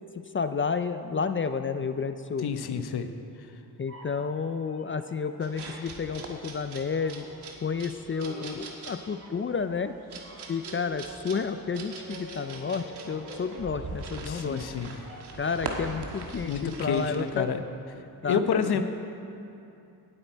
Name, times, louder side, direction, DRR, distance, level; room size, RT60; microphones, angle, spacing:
voice 1, 0.3-2.5 3.8-7.3 7.6-9.9 10.5-14.6 15.4-17.5 18.2-18.8, left 5 dB, 30° left, 10 dB, 0.4 m, -31 dB
voice 2, 2.4-3.1 14.2-14.9 16.4-17.6 18.2-18.8, left 7 dB, 70° left, 8 dB, 0.9 m, -29 dB
sound 1, 3.9-5.7 6.0-15.5, right 1 dB, 35° right, 3.4 m, -46 dB
sound 2, 5.4-17.3, right 3 dB, 90° right, 1.5 m, -42 dB
17.5 x 8.6 x 4.5 m, 2.7 s
cardioid pair, 90°, 39 cm